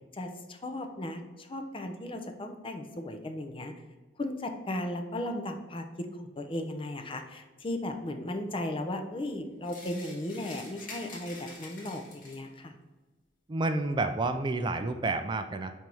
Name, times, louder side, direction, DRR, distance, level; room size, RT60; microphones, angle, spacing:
voice 1, 0.1-3.7 4.2-12.7, left 1 dB, 30° left, 5 dB, 0.6 m, -36 dB
sound 1, 9.6-12.6, left 3 dB, 50° left, 1.7 m, -47 dB
voice 2, 13.5-15.7, right 2 dB, 25° right, 8 dB, 0.3 m, -29 dB
4.7 x 4.4 x 5.3 m, 1.2 s
head